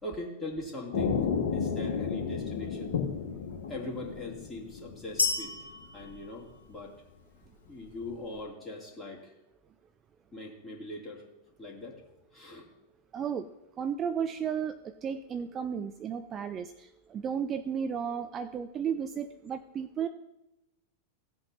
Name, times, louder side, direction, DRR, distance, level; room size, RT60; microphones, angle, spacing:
voice 1, 0.0-3.0 3.7-6.9 7.7-9.3 10.3-11.3 11.6-12.0 12.3-12.7, left 1 dB, 15° left, -3 dB, 2.8 m, -41 dB
sound 1, 0.9-5.5 5.7-6.1, left 6 dB, 55° left, 1.6 m, -32 dB
sound 2, 5.2-7.1, left 4 dB, 75° left, 1.6 m, -32 dB
voice 2, 13.1-13.5 13.8-20.1, right 7 dB, 25° right, 11 dB, 0.5 m, -34 dB
16.5 x 7.9 x 2.8 m, 0.94 s
figure-of-eight pair, 90°, 0 cm